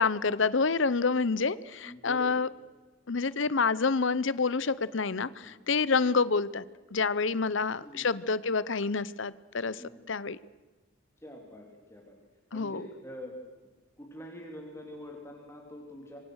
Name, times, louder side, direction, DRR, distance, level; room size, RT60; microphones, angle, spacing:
voice 1, 0.0-2.5 3.1-6.6 6.9-9.8 10.1-10.4 12.5-12.9, left 4 dB, 65° left, 19 dB, 0.8 m, -28 dB
voice 2, 1.8-2.4 5.3-5.6 7.8-8.1 9.8-10.0 11.2-12.2 12.5-13.3 13.6-13.7 14.0-16.2, left 1 dB, 15° left, 1 dB, 3.5 m, -45 dB
27.0 x 24.0 x 6.5 m, 1.2 s
head